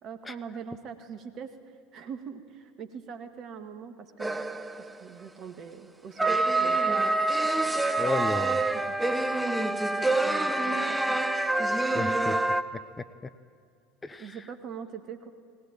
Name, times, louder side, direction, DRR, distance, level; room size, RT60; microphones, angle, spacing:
voice 1, 0.0-1.5 1.9-4.3 4.8-7.7 8.7-8.8 10.0-11.2 14.2-15.3, right 6 dB, 45° right, 8 dB, 1.9 m, -42 dB
sound 1, 4.2-5.0 6.2-12.6, right 2 dB, 10° right, 1.0 m, -26 dB
voice 2, 8.0-8.6 11.9-12.8 14.0-14.4, left 3 dB, 15° left, 12 dB, 0.8 m, -33 dB
19.5 x 19.0 x 9.1 m, 2.3 s
figure-of-eight pair, 70°, 0 cm